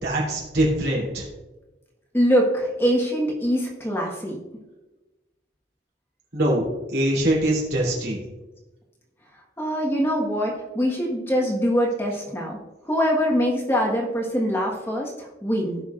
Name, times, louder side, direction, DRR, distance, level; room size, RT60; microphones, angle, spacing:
voice 1, 0.0-1.2 6.3-6.6 6.9-8.2, right 1 dB, 65° right, -4 dB, 3.3 m, -23 dB
voice 2, 2.1-4.4 9.6-12.6 12.8-15.1 15.4-15.8, equal, 15° left, -2 dB, 1.4 m, -23 dB
17.0 x 5.8 x 2.5 m, 1.1 s
head